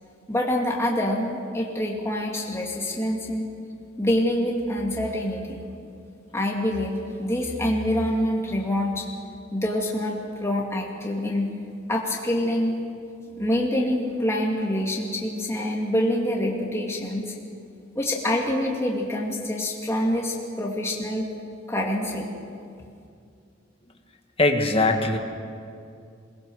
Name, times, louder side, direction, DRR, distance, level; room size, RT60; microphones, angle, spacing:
voice 1, 0.3-3.5 4.0-5.7 6.3-9.1 9.5-11.5 11.9-12.7 13.3-17.3 18.0-21.3 21.7-22.3, left 1 dB, 15° left, -1 dB, 2.3 m, -26 dB
voice 2, 24.4-25.2, left 2 dB, 30° left, 4 dB, 1.6 m, -20 dB
22.5 x 20.0 x 6.4 m, 2.4 s
head